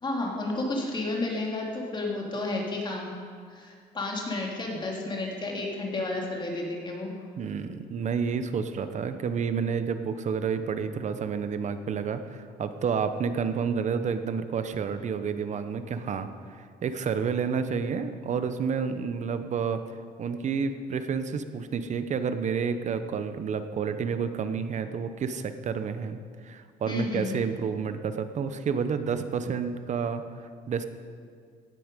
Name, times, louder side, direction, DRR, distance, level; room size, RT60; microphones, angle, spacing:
voice 1, 0.0-3.1 3.5-7.1 26.8-27.4, left 2 dB, 25° left, -1 dB, 2.6 m, -31 dB
voice 2, 7.4-16.3 16.6-19.8 20.2-26.2 26.4-30.2 30.7-30.8, right 6 dB, 45° right, 10 dB, 0.9 m, -30 dB
16.5 x 9.4 x 5.2 m, 2.1 s
cardioid pair, 110°, 17 cm